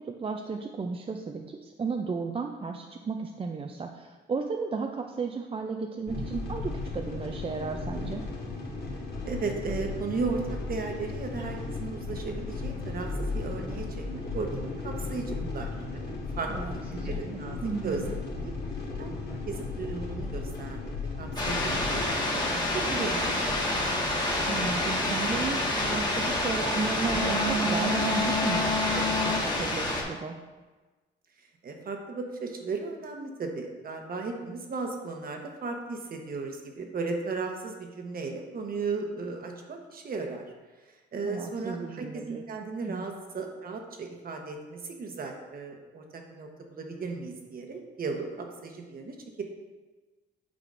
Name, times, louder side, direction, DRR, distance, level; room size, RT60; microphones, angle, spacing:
voice 1, 0.1-8.2 16.5-17.3 17.6-18.1 24.5-30.4 41.2-42.4 42.8-43.0, right 4 dB, 30° right, 3 dB, 0.5 m, -34 dB
sound 1, 6.1-22.1, left 3 dB, 55° left, 1.9 m, -35 dB
voice 2, 9.2-16.5 17.0-17.6 17.8-18.0 18.4-18.5 19.0-19.1 19.5-20.9 21.2-23.4 31.6-40.4 41.1-49.4, right 4 dB, 50° right, 3 dB, 1.1 m, -35 dB
sound 2, 21.4-30.0, left 1 dB, 20° left, 1.4 m, -27 dB
8.6 x 5.0 x 2.6 m, 1.3 s
cardioid pair, 90°, 20 cm